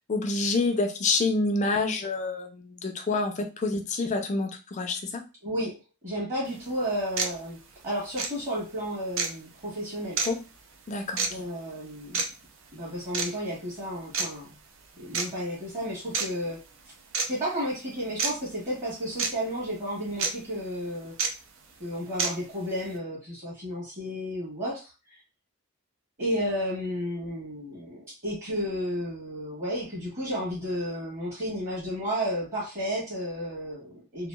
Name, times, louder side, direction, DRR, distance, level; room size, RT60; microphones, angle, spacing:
voice 1, 0.1-5.3 10.2-10.4 10.9-11.3, left 3 dB, 35° left, 4 dB, 0.4 m, -27 dB
voice 2, 5.4-5.8 6.0-7.6 7.8-10.2 11.3-12.2 12.7-14.5 15.0-16.6 17.3-21.2 21.8-24.9 26.2-34.3, equal, 35° right, -8 dB, 1.2 m, -32 dB
sound 1, 6.5-6.6 7.2-7.3 8.1-8.3 9.2-9.3 10.2-10.3 11.2-11.3 12.1-12.3 13.1-13.3 14.1-14.3 15.1-15.3 16.1-16.3 17.1-17.3 18.2-18.3 19.2-19.3 20.2-20.3 21.2-21.3 22.2-22.3, right 5 dB, 60° right, 0.4 m, -27 dB
2.9 x 2.4 x 2.2 m, 0.29 s
head